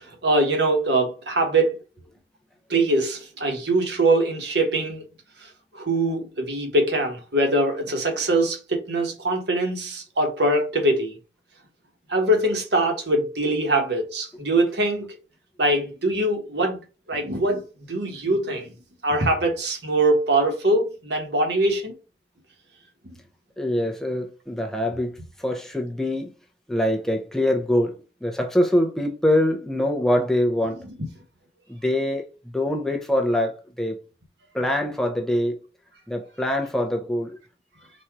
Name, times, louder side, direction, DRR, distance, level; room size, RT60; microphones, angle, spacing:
voice 1, 0.0-1.8 2.7-5.0 5.4-11.2 12.1-15.2 15.6-16.8 17.1-17.6 17.9-18.7 19.0-21.9 23.0-23.2 30.8-31.1, right 1 dB, 70° right, 1.3 m, -23 dB
voice 2, 23.6-26.3 26.7-27.9 28.2-30.8 31.7-32.3 32.5-34.0 34.5-35.6 36.1-37.4, left 1 dB, 5° left, 0.7 m, -24 dB
4.2 x 2.6 x 4.7 m
head